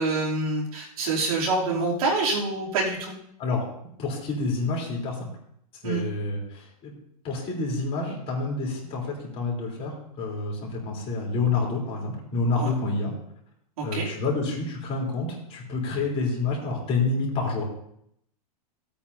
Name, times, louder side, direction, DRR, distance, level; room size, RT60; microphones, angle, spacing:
voice 1, 0.0-3.2 5.8-6.0 12.6-12.7 13.8-14.1, right 3 dB, 70° right, -3 dB, 3.2 m, -26 dB
voice 2, 4.0-5.3 5.8-6.9 7.2-13.1 13.8-17.6, left 3 dB, 30° left, -2 dB, 3.7 m, -28 dB
17.0 x 8.8 x 2.8 m, 0.71 s
supercardioid pair, 145°, 19 cm